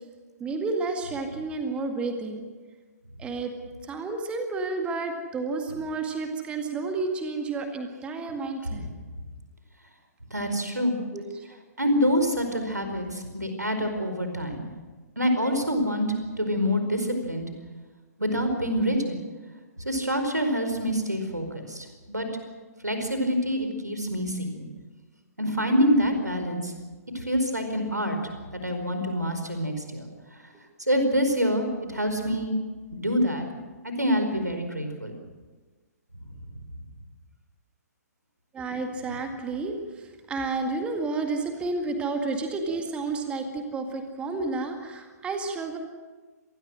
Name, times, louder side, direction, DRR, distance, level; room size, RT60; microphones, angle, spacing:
voice 1, 0.4-2.4 3.2-3.5 3.8-8.9 11.1-11.5 38.5-45.8, right 3 dB, 10° right, 5 dB, 1.9 m, -31 dB
voice 2, 10.3-11.0 11.8-14.6 15.2-16.1 16.4-17.4 18.2-19.2 19.8-22.3 22.8-24.7 25.4-26.7 27.1-28.2 28.5-30.1 30.8-32.5 32.9-33.5 33.8-35.2, equal, 85° right, 6 dB, 4.8 m, -26 dB
26.5 x 19.5 x 6.4 m, 1.4 s
figure-of-eight pair, 125°, 9 cm